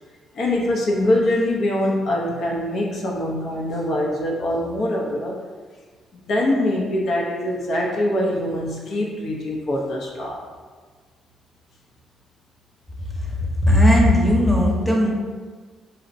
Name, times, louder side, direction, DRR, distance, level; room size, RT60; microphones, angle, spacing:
voice 1, 0.3-5.4 6.3-10.4, left 1 dB, 65° left, -2 dB, 0.5 m, -23 dB
voice 2, 13.6-15.1, left 1 dB, 5° left, -4 dB, 0.8 m, -16 dB
3.9 x 2.1 x 2.6 m, 1.4 s
cardioid pair, 90°, 0 cm